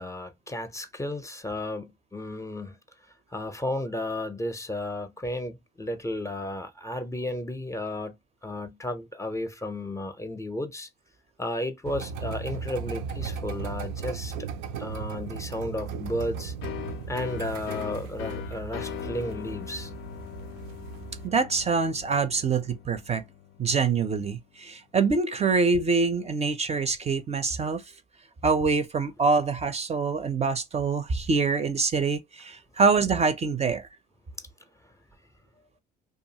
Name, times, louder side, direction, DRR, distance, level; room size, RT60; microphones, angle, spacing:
voice 1, 0.0-2.8 3.3-8.1 8.4-10.9 11.4-14.5 14.8-16.5 17.1-19.9, left 1 dB, 15° left, 0.6 m, -33 dB
sound 1, 11.8-21.3, right 6 dB, 80° right, 0.5 m, -37 dB
sound 2, 16.6-24.1, left 11 dB, 60° left, 0.5 m, -40 dB
voice 2, 21.2-23.2 23.6-27.8 28.4-33.9, right 4 dB, 30° right, 0.5 m, -25 dB
2.5 x 2.3 x 2.8 m
supercardioid pair, 75°, 21 cm